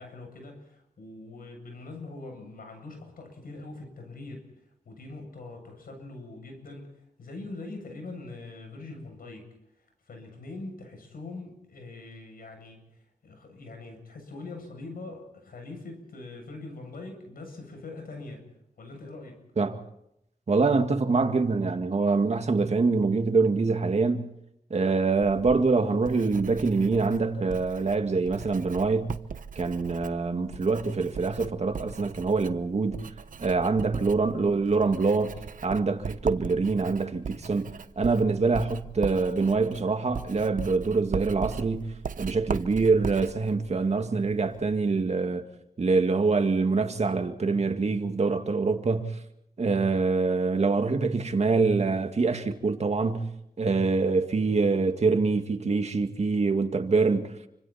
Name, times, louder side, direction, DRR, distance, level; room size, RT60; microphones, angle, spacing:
voice 1, 0.0-9.5 9.8-18.5 18.8-19.4, left 2 dB, 80° left, 7.8 m, -43 dB
voice 2, 20.5-24.3 24.7-29.2 29.6-33.0 33.4-35.3 35.6-45.5 45.8-49.1 49.6-53.3 53.6-57.3, right 4 dB, 50° right, 2.1 m, -25 dB
Writing, 25.2-44.7, right 6 dB, 65° right, 1.0 m, -39 dB
29.5 x 25.5 x 4.4 m
wide cardioid pair, 90°, 15 cm